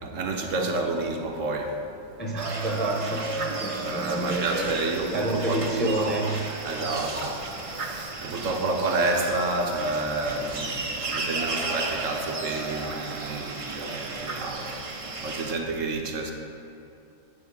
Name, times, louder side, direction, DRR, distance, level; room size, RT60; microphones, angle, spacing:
voice 1, 0.0-1.8 3.8-6.2 6.6-16.3, right 2 dB, 65° right, 2 dB, 1.2 m, -30 dB
voice 2, 2.2-4.7 5.1-6.3, right 1 dB, 10° left, -1 dB, 0.8 m, -29 dB
sound 1, 2.4-15.5, right 3 dB, 40° right, 0.5 m, -33 dB
9.3 x 4.3 x 7.1 m, 2.7 s
omnidirectional pair, 1.5 m